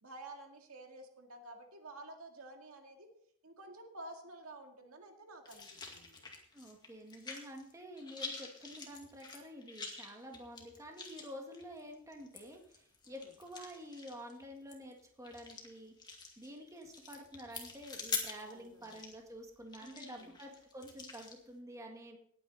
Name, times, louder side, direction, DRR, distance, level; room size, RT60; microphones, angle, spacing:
voice 1, 0.0-3.1 3.4-6.2 13.0-13.3 18.4-19.0 19.8-20.3, right 2 dB, 80° right, 3 dB, 2.1 m, -51 dB
sound 1, 5.5-7.7 8.0-21.4, left 4 dB, 20° left, 2.1 m, -46 dB
voice 2, 6.5-15.9 16.4-22.2, equal, 15° right, 2 dB, 1.8 m, -49 dB
18.5 x 9.1 x 4.0 m, 0.67 s
head